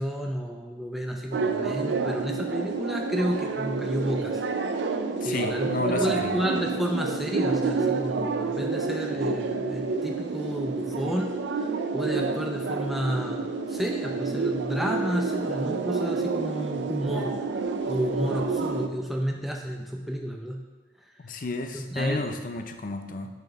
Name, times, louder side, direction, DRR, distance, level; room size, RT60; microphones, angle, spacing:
voice 1, 0.0-4.4 5.2-17.3 17.9-20.6 21.7-22.4, equal, ahead, 1 dB, 0.5 m, -31 dB
sound 1, 1.3-18.9, right 4 dB, 80° right, 0.5 m, -29 dB
voice 2, 5.2-6.4 21.2-23.3, left 3 dB, 50° left, 7 dB, 0.5 m, -32 dB
6.5 x 4.5 x 4.7 m, 1.2 s
head